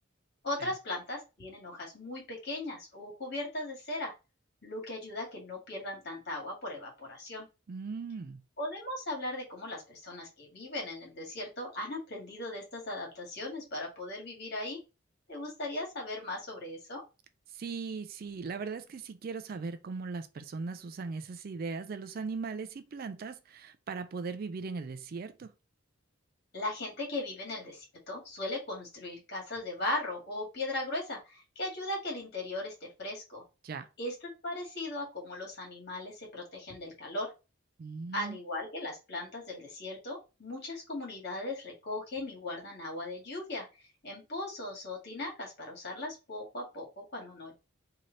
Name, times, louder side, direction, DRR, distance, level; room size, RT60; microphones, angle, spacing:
voice 1, 0.4-4.1 4.6-7.5 8.6-14.8 15.3-17.0 26.5-33.5 34.0-34.1 34.4-37.3 38.1-43.7 44.0-47.5, left 2 dB, 50° left, 1.6 m, -38 dB
voice 2, 7.7-8.4 17.5-25.5 33.6-33.9 37.8-38.4, right 4 dB, 45° right, 0.3 m, -39 dB
3.2 x 2.8 x 3.7 m
head